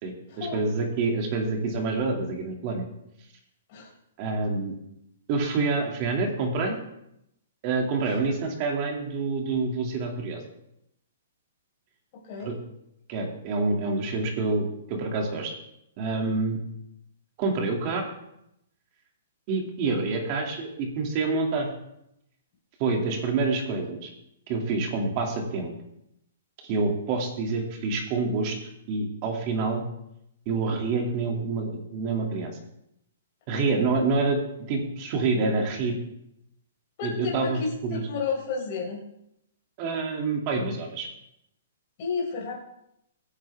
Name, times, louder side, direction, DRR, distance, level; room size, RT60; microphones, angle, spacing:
voice 1, 0.0-2.8 4.2-4.7 5.3-6.8 7.6-10.4 12.4-12.6 13.1-15.5 16.0-16.6 17.4-18.0 19.5-21.7 22.8-24.1 24.5-25.7 26.6-28.6 28.9-29.8 30.5-32.6 33.5-34.4 34.7-35.9 37.0-38.0 39.8-41.1, right 3 dB, 25° right, 1 dB, 2.5 m, -27 dB
voice 2, 37.0-37.5 37.9-39.0 42.0-42.5, left 5 dB, 30° left, -2 dB, 4.7 m, -31 dB
25.0 x 9.8 x 3.5 m, 0.80 s
hypercardioid pair, 175°, 0 cm